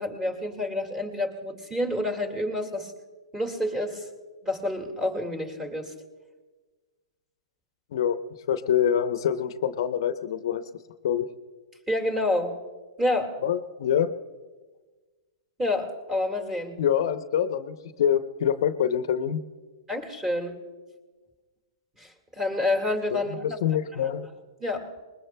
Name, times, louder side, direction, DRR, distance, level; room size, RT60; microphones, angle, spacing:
voice 1, 0.0-2.9 3.3-4.1 4.4-5.9 11.9-12.5 13.0-13.3 15.6-16.8 19.9-20.6 22.0-23.6 23.9-24.1 24.6-24.9, left 1 dB, 15° right, 5 dB, 2.0 m, -28 dB
voice 2, 7.9-8.2 8.5-10.6 11.0-11.3 13.4-14.1 16.8-19.4 23.1-24.3, left 9 dB, 65° left, 11 dB, 0.7 m, -25 dB
24.0 x 20.5 x 2.2 m, 1.3 s
hypercardioid pair, 125°, 3 cm